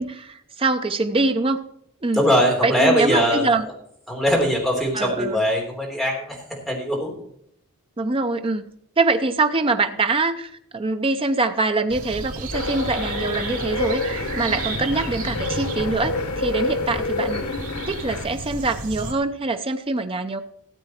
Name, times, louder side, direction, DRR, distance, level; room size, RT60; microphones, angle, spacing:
voice 1, 0.0-1.6 2.0-2.2 2.6-3.6 4.9-5.4 8.0-8.7 9.0-20.4, right 3 dB, 25° right, 8 dB, 0.6 m, -24 dB
voice 2, 2.1-3.5 4.1-7.2, equal, ahead, -3 dB, 3.4 m, -21 dB
sound 1, 11.9-19.1, right 2 dB, 75° right, 2.4 m, -32 dB
sound 2, 12.5-18.3, left 3 dB, 90° left, 1.1 m, -28 dB
13.5 x 8.4 x 4.4 m, 0.70 s
head